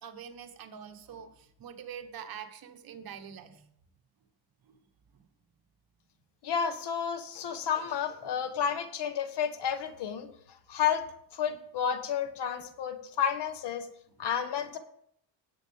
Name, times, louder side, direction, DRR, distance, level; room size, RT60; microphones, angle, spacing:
voice 1, 0.0-3.7 4.6-4.9 5.1-5.3, right 8 dB, 45° right, 6 dB, 1.3 m, -45 dB
voice 2, 6.4-11.1 11.3-13.9 14.2-14.8, left 8 dB, 55° left, 10 dB, 1.3 m, -31 dB
18.0 x 7.9 x 3.6 m, 0.70 s
cardioid pair, 130°, 47 cm